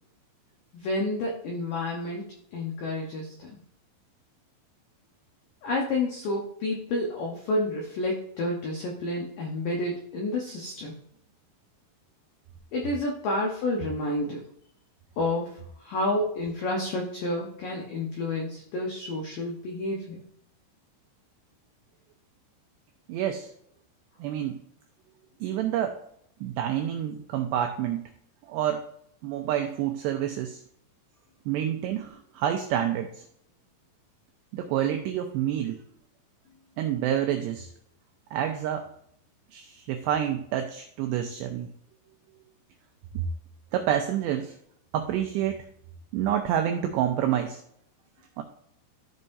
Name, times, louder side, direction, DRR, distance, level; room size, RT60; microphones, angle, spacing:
voice 1, 0.7-3.5 5.6-10.9 12.7-14.4 15.2-15.6 15.8-20.2, left 2 dB, 85° left, -1 dB, 1.9 m, -30 dB
voice 2, 23.1-23.5 24.2-24.6 25.4-26.0 26.4-28.1 28.5-28.9 29.2-30.6 31.5-33.2 34.5-35.8 36.8-37.7 38.3-38.9 39.5-41.7 43.1-43.3 43.7-44.6 44.9-45.6 46.1-47.6 48.4-48.5, right 10 dB, 90° right, 5 dB, 2.4 m, -28 dB
13.5 x 5.4 x 2.6 m, 0.70 s
omnidirectional pair, 5.7 m